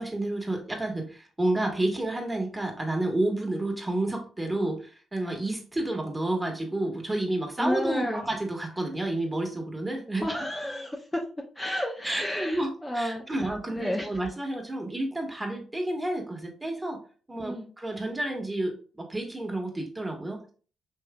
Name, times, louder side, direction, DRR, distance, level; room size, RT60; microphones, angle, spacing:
voice 1, 0.0-10.3 12.0-17.0 17.3-20.5, right 1 dB, 20° right, 2 dB, 1.6 m, -30 dB
voice 2, 7.6-8.2 10.2-11.2 11.5-13.2 13.7-14.2 17.4-17.7, left 1 dB, 15° left, 0 dB, 0.9 m, -31 dB
5.5 x 3.1 x 2.3 m, 0.39 s
hypercardioid pair, 50°, 0 cm